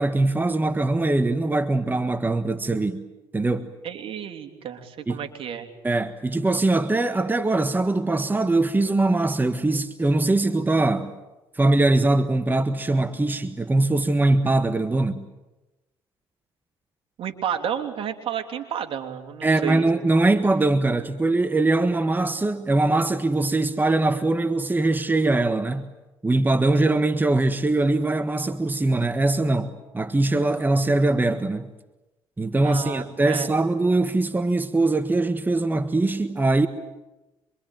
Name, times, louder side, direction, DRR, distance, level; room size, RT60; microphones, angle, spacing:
voice 1, 0.0-3.0 3.3-3.7 5.1-5.2 5.8-11.1 11.5-15.2 19.4-25.9 26.2-31.7 32.4-36.7, right 2 dB, 20° right, 1.6 m, -22 dB
voice 2, 3.8-5.7 17.2-19.9 32.6-33.5, right 9 dB, 60° right, 3.2 m, -31 dB
26.5 x 24.0 x 9.1 m
supercardioid pair, 70°, 10 cm